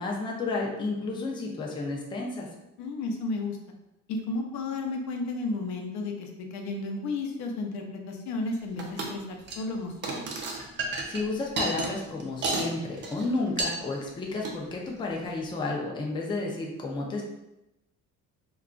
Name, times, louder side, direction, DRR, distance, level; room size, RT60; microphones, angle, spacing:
voice 1, 0.0-2.5 11.1-17.2, left 3 dB, 15° left, -1 dB, 0.4 m, -31 dB
voice 2, 2.8-3.6 4.1-10.3, left 3 dB, 70° left, 3 dB, 0.5 m, -33 dB
sound 1, 8.8-9.1 9.4-9.7 10.0-12.7 13.0-13.2 13.6-13.8 14.3-14.5, right 3 dB, 40° right, 0.5 m, -31 dB
2.3 x 2.3 x 3.6 m, 0.91 s
cardioid pair, 160°, 29 cm